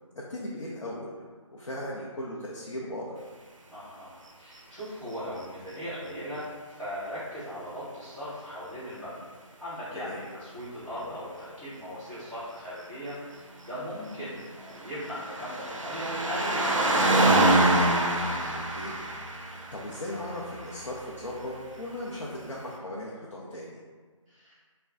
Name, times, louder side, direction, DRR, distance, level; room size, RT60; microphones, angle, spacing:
voice 1, 0.3-1.1 1.5-3.2 9.9-10.2 18.5-19.0 19.5-23.8, left 1 dB, 75° left, -5 dB, 0.7 m, -37 dB
voice 2, 3.7-9.2 9.6-17.8 24.3-24.6, equal, 5° right, -19 dB, 1.4 m, -38 dB
sound 1, 14.3-21.0 21.9-22.0, right 1 dB, 75° right, 0.6 m, -26 dB
3.2 x 2.2 x 3.8 m, 1.5 s
figure-of-eight pair, 160°, 17 cm